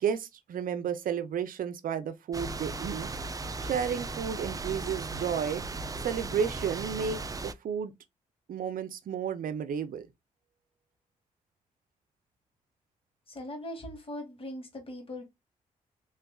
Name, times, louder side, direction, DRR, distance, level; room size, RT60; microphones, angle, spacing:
voice 1, 0.0-3.1 3.6-5.6 6.0-7.9 8.5-10.1, right 7 dB, 70° right, 0.6 m, -32 dB
sound 1, 2.3-7.5, right 3 dB, 25° right, 0.4 m, -37 dB
voice 2, 13.3-15.3, left 1 dB, 40° left, 1.7 m, -40 dB
3.3 x 3.1 x 2.3 m
supercardioid pair, 55°, 15 cm